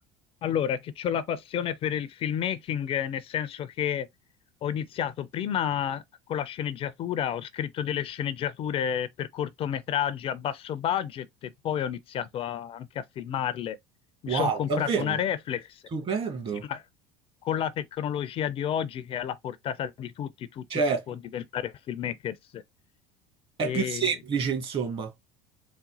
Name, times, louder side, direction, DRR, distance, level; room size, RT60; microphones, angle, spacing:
voice 1, 0.4-4.1 4.6-6.0 6.3-13.8 14.2-15.8 16.7-16.8 17.4-20.6 21.1-22.6 23.6-24.1, left 9 dB, 45° left, 0.5 m, -30 dB
voice 2, 14.3-15.2 15.9-16.6 20.7-21.0 23.6-25.1, right 5 dB, 45° right, 1.7 m, -28 dB
4.1 x 2.1 x 3.9 m
hypercardioid pair, 70°, 14 cm